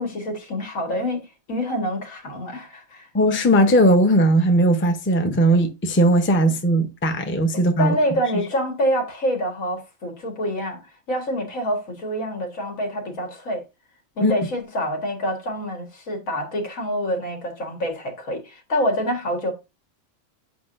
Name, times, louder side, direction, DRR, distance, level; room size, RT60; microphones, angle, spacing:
voice 1, 0.0-3.1 7.5-10.8 11.1-13.6 14.2-19.5, equal, 80° left, 2.0 m, -26 dB
voice 2, 3.1-8.0 14.2-14.3, right 1 dB, 15° left, 0.6 m, -18 dB
7.9 x 5.1 x 2.5 m
omnidirectional pair, 1.4 m